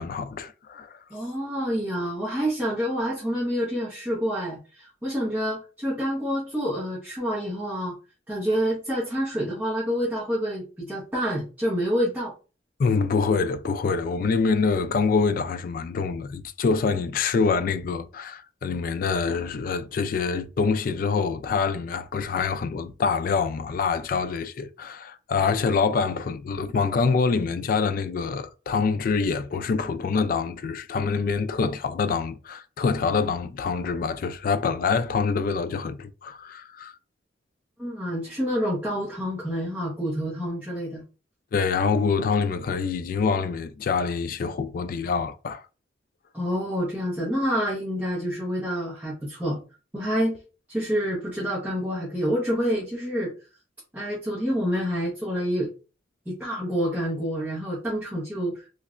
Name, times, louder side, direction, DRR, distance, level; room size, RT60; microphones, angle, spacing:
voice 1, 0.0-1.0 12.8-36.9 41.5-45.6, left 5 dB, 50° left, 0.3 m, -25 dB
voice 2, 1.1-7.9 8.3-12.3 37.8-41.0 46.3-49.6 49.9-50.4 50.7-53.3 53.9-55.7 56.3-58.6, equal, 10° right, 0.9 m, -27 dB
3.2 x 2.8 x 2.4 m
head